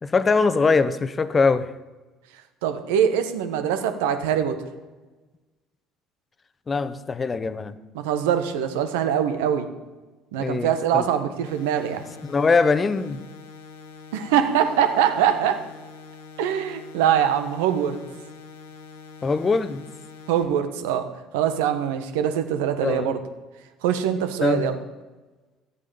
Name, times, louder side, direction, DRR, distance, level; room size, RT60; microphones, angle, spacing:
voice 1, 0.0-1.7 6.7-7.7 10.4-11.1 12.2-13.2 19.2-19.8 22.8-23.1 24.4-24.7, left 4 dB, 30° left, 0.9 m, -22 dB
voice 2, 2.6-4.6 7.9-9.7 10.3-12.0 14.1-15.7 16.4-18.0 20.3-21.1 21.3-23.2 23.8-24.8, right 9 dB, 80° right, 1.2 m, -23 dB
sound 1, 11.4-20.4, left 5 dB, 85° left, 1.5 m, -44 dB
13.0 x 8.4 x 7.0 m
hypercardioid pair, 60°, 0 cm